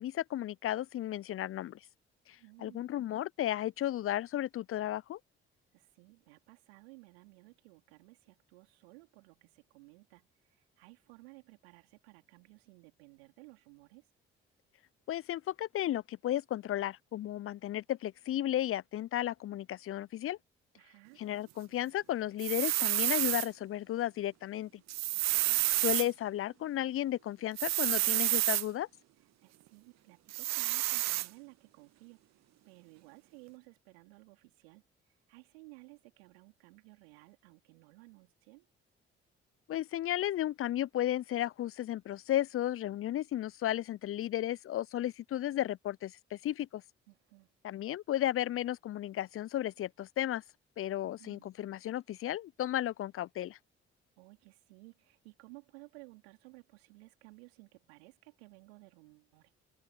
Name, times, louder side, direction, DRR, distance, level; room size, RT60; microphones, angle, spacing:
voice 1, 0.0-1.8 2.6-5.2 15.1-20.4 21.2-24.7 25.8-28.9 39.7-46.8 47.6-50.4 50.8-53.6, left 13 dB, 45° left, 0.5 m, -34 dB
voice 2, 2.3-3.0 5.7-14.1 20.7-21.3 25.1-25.7 29.4-32.2 32.7-34.8 35.3-38.7 47.1-47.5 51.0-51.5 54.2-59.6, right 27 dB, 80° right, 3.7 m, -57 dB
sound 1, 22.4-23.5 24.9-26.1 27.6-28.7 30.3-31.3, right 16 dB, 60° right, 0.8 m, -29 dB
figure-of-eight pair, 40°, 31 cm